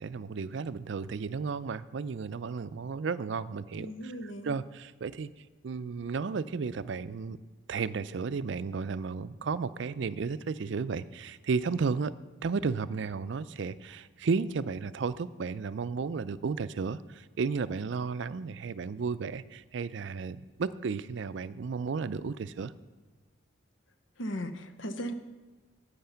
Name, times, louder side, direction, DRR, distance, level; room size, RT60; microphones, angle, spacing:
voice 1, 0.0-3.9 4.5-5.3 5.6-7.4 7.7-12.1 12.4-22.7, right 5 dB, 65° right, 15 dB, 0.4 m, -33 dB
voice 2, 3.8-4.6 24.2-25.1, equal, 75° left, 9 dB, 0.9 m, -37 dB
10.5 x 8.7 x 5.7 m, 1.3 s
head